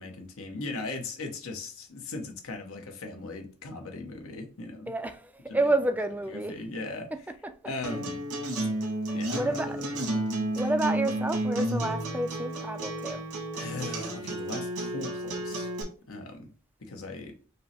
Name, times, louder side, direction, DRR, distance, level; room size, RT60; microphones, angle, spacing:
voice 1, 0.0-4.9 5.5-5.7 6.3-7.1 7.6-8.2 9.1-9.8 13.5-15.7 16.1-16.5 16.8-17.3, left 3 dB, 65° left, 0.8 m, -38 dB
voice 2, 4.9-6.5 9.3-9.8 10.6-13.2, right 2 dB, 5° right, 0.4 m, -29 dB
Acoustic guitar, 7.8-15.8, right 1 dB, 90° right, 1.5 m, -32 dB
5.3 x 2.1 x 4.2 m
head